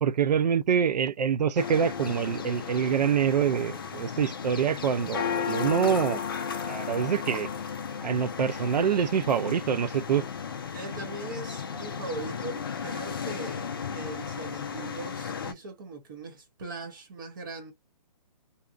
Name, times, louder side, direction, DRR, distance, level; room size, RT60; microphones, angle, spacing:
voice 1, 0.0-6.2 6.6-7.5 8.0-10.3, right 7 dB, 75° right, 0.5 m, -25 dB
sound 1, 1.6-15.5, left 7 dB, 35° left, 0.4 m, -34 dB
voice 2, 10.7-17.7, right 3 dB, 30° right, 0.7 m, -40 dB
2.7 x 2.3 x 2.3 m
hypercardioid pair, 165°, 21 cm